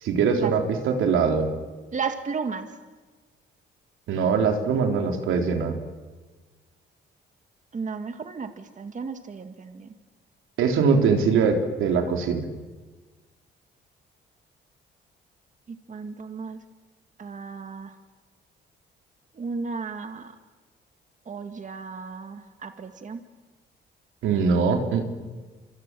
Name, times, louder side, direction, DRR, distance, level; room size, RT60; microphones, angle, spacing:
voice 1, 0.0-1.5 4.1-5.8 10.6-12.5 24.2-25.0, right 5 dB, 85° right, 4 dB, 3.7 m, -22 dB
voice 2, 1.9-2.7 7.7-9.9 15.7-16.6 17.2-17.9 19.4-20.3 21.3-23.2, right 5 dB, 40° right, 7 dB, 2.0 m, -34 dB
26.5 x 26.0 x 7.7 m, 1.3 s
cardioid pair, 90°, 20 cm